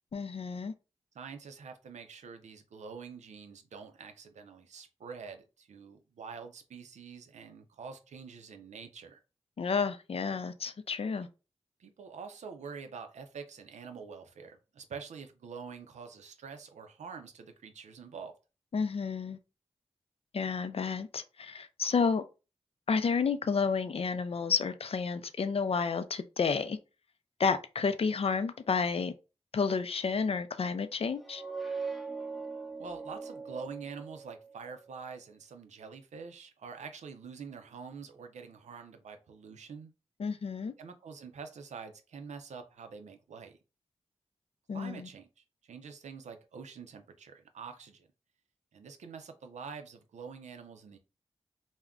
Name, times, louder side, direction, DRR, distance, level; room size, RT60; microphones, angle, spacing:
voice 1, 0.1-0.7 9.6-11.3 18.7-19.4 20.3-22.2 22.9-26.8 27.4-29.1 29.5-31.4 40.2-40.7 44.7-45.1, left 5 dB, 55° left, 0.4 m, -31 dB
voice 2, 1.1-9.2 11.8-18.3 32.8-39.9 40.8-43.6 44.7-48.1 48.7-51.0, right 5 dB, 90° right, 0.4 m, -46 dB
sound 1, 31.1-34.7, right 4 dB, ahead, 0.6 m, -40 dB
2.3 x 2.1 x 3.5 m
cardioid pair, 40°, 12 cm